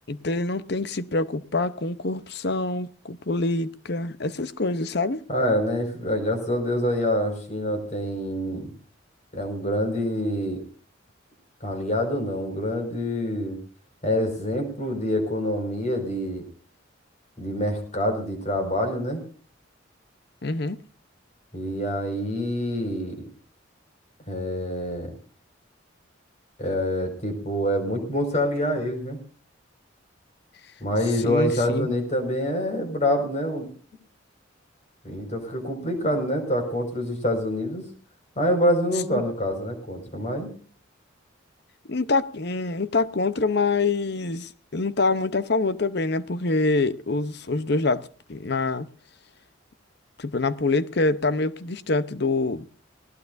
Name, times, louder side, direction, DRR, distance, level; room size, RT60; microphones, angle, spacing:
voice 1, 0.1-5.2 20.4-20.8 31.2-31.9 39.1-39.2 41.9-48.9 50.2-52.7, left 3 dB, 55° left, 0.8 m, -25 dB
voice 2, 5.3-8.7 9.3-10.6 11.6-13.6 14.0-16.4 17.4-19.2 21.5-23.2 24.3-25.1 26.6-29.2 30.8-33.7 35.0-37.8 38.4-40.5, equal, 35° left, 5.3 m, -26 dB
19.0 x 19.0 x 2.6 m
head